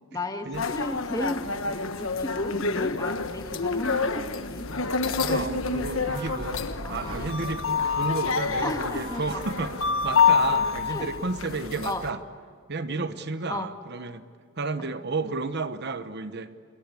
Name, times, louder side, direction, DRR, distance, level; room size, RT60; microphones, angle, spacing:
voice 1, 0.1-4.7 6.8-7.4 8.6-9.4 10.9-11.1 11.9-12.0 13.5-13.7 14.8-14.9, left 1 dB, 15° left, 5 dB, 2.0 m, -34 dB
sound 1, 0.5-12.1, left 5 dB, 65° left, 1.4 m, -27 dB
voice 2, 5.2-6.6 6.9-12.2 12.7-14.2 14.6-16.5, right 3 dB, 50° right, 11 dB, 1.1 m, -32 dB
Brass instrument, 5.7-10.3, equal, 20° right, 5.7 m, -44 dB
29.0 x 21.5 x 8.5 m, 2.1 s
head